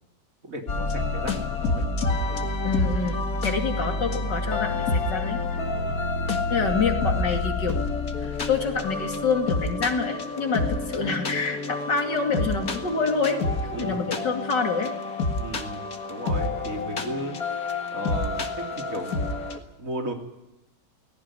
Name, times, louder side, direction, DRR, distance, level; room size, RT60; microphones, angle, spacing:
voice 1, 0.4-2.4 5.6-6.0 6.4-6.8 10.5-10.9 13.7-14.1 15.4-17.4 17.9-20.1, right 1 dB, 45° right, 3 dB, 3.4 m, -36 dB
sound 1, 0.7-19.6, left 3 dB, 55° left, 2.4 m, -28 dB
voice 2, 2.6-3.2 3.4-5.4 6.5-7.9 8.2-14.9, left 4 dB, 70° left, 4 dB, 3.2 m, -27 dB
18.5 x 18.0 x 9.8 m, 0.92 s
omnidirectional pair, 2.0 m